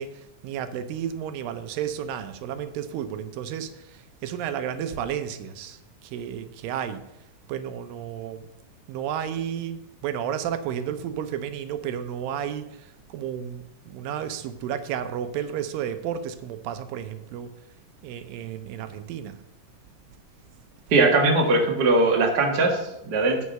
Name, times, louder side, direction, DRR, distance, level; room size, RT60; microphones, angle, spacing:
voice 1, 0.0-7.1 7.5-8.5 8.9-17.5 18.0-19.4, right 9 dB, 85° right, 10 dB, 2.4 m, -32 dB
voice 2, 20.9-23.4, right 2 dB, 40° right, 1 dB, 1.5 m, -20 dB
9.5 x 5.8 x 6.5 m, 0.88 s
omnidirectional pair, 4.0 m